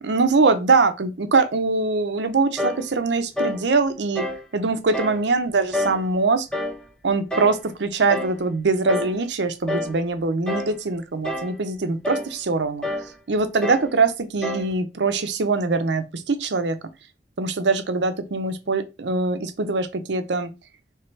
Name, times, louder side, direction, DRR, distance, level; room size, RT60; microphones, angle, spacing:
voice 1, 0.0-4.3 4.5-6.5 7.0-12.8 13.3-16.8 17.4-20.5, right 3 dB, 90° right, 0.6 m, -22 dB
sound 1, 2.6-2.9 3.4-3.6 4.2-4.4 4.9-5.2 5.7-6.0 6.5-6.8 7.3-7.6 8.1-8.4 8.9-9.2 9.7-10.0 10.5-10.8 11.2-11.6 12.0-12.3 12.8-13.1 13.6-13.9 14.4-14.7, left 1 dB, 5° left, 0.7 m, -28 dB
3.3 x 3.2 x 4.5 m
head